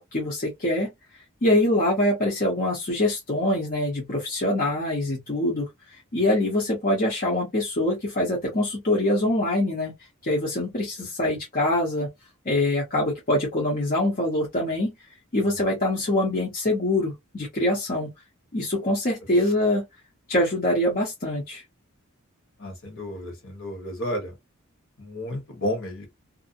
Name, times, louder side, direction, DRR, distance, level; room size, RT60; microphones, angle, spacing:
voice 1, 0.1-0.9 1.4-5.7 6.1-9.9 10.2-12.1 12.4-14.9 15.3-18.1 18.5-19.8 20.3-21.6, left 1 dB, 40° left, 0.8 m, -24 dB
voice 2, 22.6-24.3 25.0-26.1, left 1 dB, 60° left, 1.2 m, -32 dB
2.6 x 2.1 x 2.5 m
head